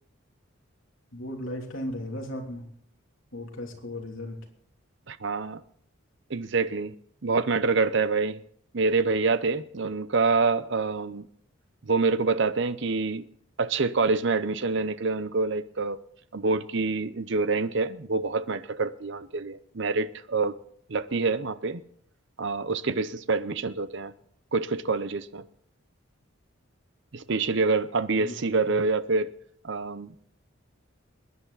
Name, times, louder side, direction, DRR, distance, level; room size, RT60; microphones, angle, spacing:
voice 1, 1.1-2.6 3.3-4.4 28.2-28.3, left 1 dB, 65° left, 3.1 m, -36 dB
voice 2, 5.1-5.6 6.3-6.9 7.2-8.4 8.7-11.3 11.8-13.2 13.6-16.0 16.3-20.5 20.9-21.8 22.4-24.1 24.5-25.4 27.1-29.3 29.6-30.1, right 4 dB, 55° right, 0.7 m, -26 dB
22.0 x 10.5 x 4.1 m
head